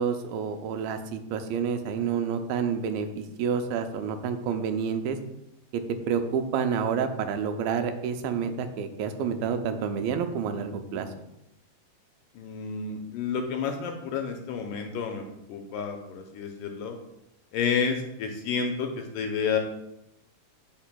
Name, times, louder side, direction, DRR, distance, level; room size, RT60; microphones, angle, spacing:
voice 1, 0.0-5.2 5.7-5.8 6.1-11.1, right 6 dB, 85° right, 7 dB, 2.4 m, -29 dB
voice 2, 12.4-15.2 15.5-17.0 17.5-19.6, left 6 dB, 80° left, 3 dB, 2.1 m, -30 dB
8.5 x 5.9 x 2.2 m, 0.85 s
omnidirectional pair, 4.1 m